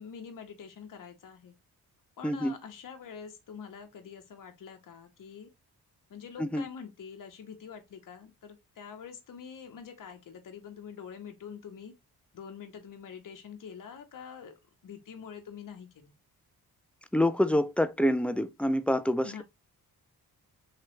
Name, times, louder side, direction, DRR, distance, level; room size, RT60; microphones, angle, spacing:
voice 1, 0.0-1.5 2.2-5.5 6.1-12.0 12.3-14.5 14.8-16.1 19.2-19.4, left 7 dB, 55° left, 0.9 m, -45 dB
voice 2, 2.2-2.6 6.4-6.6 17.1-19.4, left 1 dB, 5° left, 0.3 m, -26 dB
3.3 x 3.1 x 3.0 m
cardioid pair, 70°, 38 cm